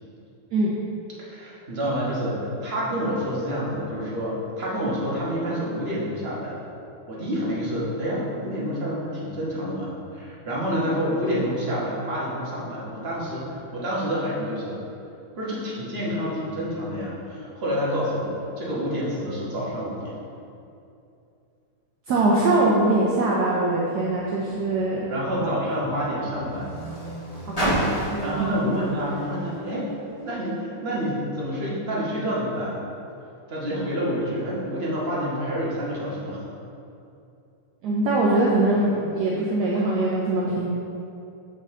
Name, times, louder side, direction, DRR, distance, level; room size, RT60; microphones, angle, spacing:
voice 1, 1.2-6.6 7.1-14.8 15.3-20.1 25.1-26.8 28.2-29.9 30.3-32.8 33.5-36.4, equal, 30° right, -7 dB, 1.4 m, -28 dB
voice 2, 22.1-25.1 25.4-25.5 27.5-27.8 28.0-28.9 37.8-40.7, right 2 dB, 70° right, -5 dB, 1.0 m, -22 dB
Car, 24.0-30.5 31.4-31.5, equal, 20° left, 1.4 m, -33 dB
6.4 x 5.4 x 3.7 m, 2.7 s
omnidirectional pair, 2.4 m